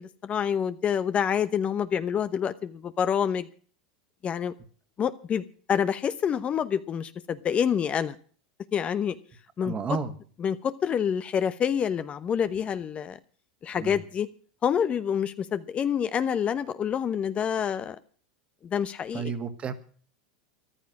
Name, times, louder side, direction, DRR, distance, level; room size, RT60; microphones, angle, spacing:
voice 1, 0.0-3.5 4.2-4.5 5.0-8.2 8.7-9.2 9.6-9.7 10.4-13.2 13.6-14.3 14.6-18.0 18.6-19.2, left 8 dB, 30° left, 13 dB, 1.0 m, -27 dB
voice 2, 9.6-10.1 13.8-14.0 19.1-19.7, right 5 dB, 30° right, 11 dB, 2.0 m, -31 dB
14.5 x 12.0 x 6.1 m, 0.44 s
hypercardioid pair, 105°, 4 cm